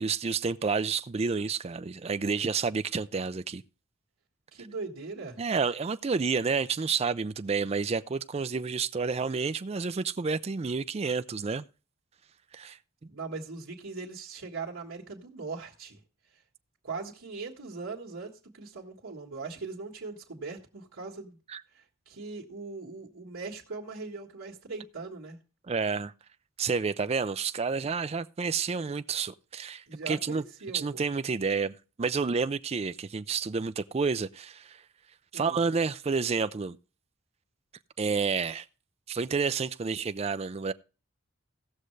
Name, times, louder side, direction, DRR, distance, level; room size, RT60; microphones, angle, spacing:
voice 1, 0.0-3.6 5.4-11.7 12.5-12.8 21.5-21.6 25.7-26.1 26.6-30.4 30.7-34.8 35.3-36.8 38.0-38.7 39.1-40.7, right 5 dB, 30° right, 0.4 m, -30 dB
voice 2, 4.5-5.4 13.1-16.0 16.8-21.4 21.7-25.4 29.9-31.0 35.3-35.6, right 4 dB, 90° right, 1.6 m, -40 dB
17.0 x 6.5 x 3.2 m
head